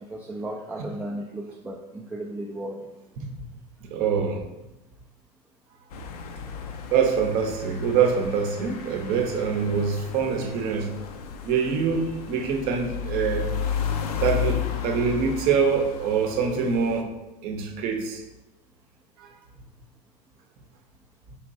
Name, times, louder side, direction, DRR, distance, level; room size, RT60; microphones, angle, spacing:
voice 1, 0.0-2.9, right 1 dB, 5° right, -1 dB, 0.3 m, -35 dB
voice 2, 3.9-4.5 6.9-10.9 11.4-13.5 14.2-17.1 17.4-18.2 19.2-19.3, right 6 dB, 45° right, 4 dB, 0.7 m, -25 dB
sound 1, 5.9-17.0, left 8 dB, 65° left, 0.5 m, -33 dB
4.5 x 2.9 x 2.6 m, 0.98 s
figure-of-eight pair, 80°, 21 cm